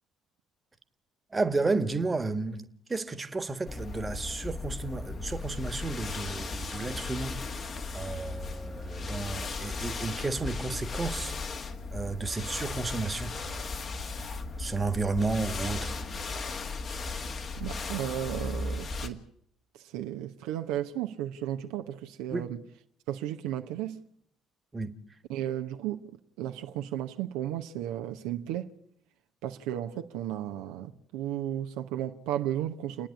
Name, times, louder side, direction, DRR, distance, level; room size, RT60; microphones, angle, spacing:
voice 1, 1.3-7.7 7.9-11.3 11.9-13.4 14.6-16.0 22.3-22.4 24.7-25.0, right 3 dB, 25° right, 1.6 m, -32 dB
sound 1, 3.7-19.1, left 3 dB, 45° left, 2.0 m, -36 dB
voice 2, 17.6-19.2 19.7-22.6 23.1-24.0 25.3-28.7 29.4-33.1, right 11 dB, 70° right, 0.9 m, -34 dB
29.5 x 10.0 x 9.7 m
hypercardioid pair, 55°, 0 cm